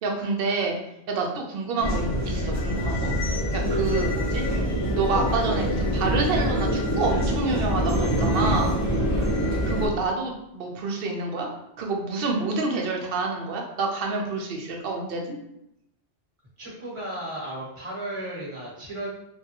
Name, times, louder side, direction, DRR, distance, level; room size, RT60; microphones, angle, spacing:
voice 1, 0.0-0.8 1.1-4.4 4.9-8.8 9.6-11.5 11.8-15.4, right 3 dB, 60° right, 1 dB, 0.7 m, -28 dB
sound 1, 1.8-9.9, equal, 25° left, 0.4 m, -25 dB
voice 2, 16.6-19.1, right 1 dB, 30° right, -6 dB, 1.0 m, -34 dB
3.3 x 2.3 x 2.8 m, 0.81 s
omnidirectional pair, 1.2 m